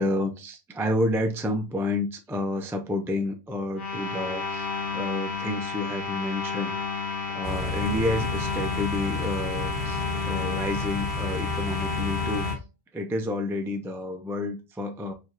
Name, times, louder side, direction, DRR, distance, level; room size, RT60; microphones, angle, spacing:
voice 1, 0.0-7.0 7.3-12.5 12.9-15.1, left 1 dB, 5° right, 4 dB, 0.3 m, -30 dB
sound 1, 3.7-12.6, left 4 dB, 55° left, 1.5 m, -32 dB
Car / Idling, 7.4-12.6, left 3 dB, 25° right, 1.3 m, -32 dB
4.6 x 3.0 x 2.6 m, 0.28 s
omnidirectional pair, 1.0 m